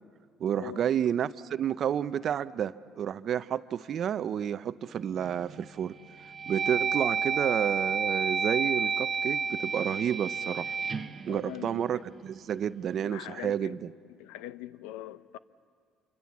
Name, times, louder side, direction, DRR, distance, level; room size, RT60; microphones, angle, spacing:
voice 1, 0.4-6.0 6.5-10.8 11.3-13.8, right 9 dB, 55° right, 0.6 m, -30 dB
sound 1, 5.2-5.6 6.1-12.3, right 5 dB, 35° right, 0.9 m, -31 dB
voice 2, 11.3-12.1 13.0-13.8 14.1-15.4, left 14 dB, 90° left, 0.6 m, -42 dB
26.5 x 25.0 x 7.2 m
supercardioid pair, 80°, 0 cm